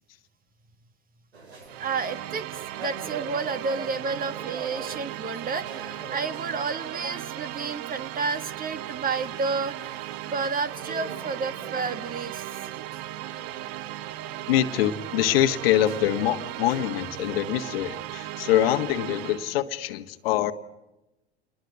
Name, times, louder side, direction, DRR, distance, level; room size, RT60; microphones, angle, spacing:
sound 1, 1.3-17.5, right 4 dB, 75° right, 5.2 m, -45 dB
sound 2, 1.7-19.6, right 14 dB, 50° right, 1.1 m, -37 dB
voice 1, 1.8-2.5 2.7-12.4, right 4 dB, 25° right, 12 dB, 1.8 m, -31 dB
voice 2, 14.5-20.5, left 12 dB, 65° left, 11 dB, 1.5 m, -24 dB
28.5 x 21.5 x 9.3 m, 0.98 s
figure-of-eight pair, 75°, 32 cm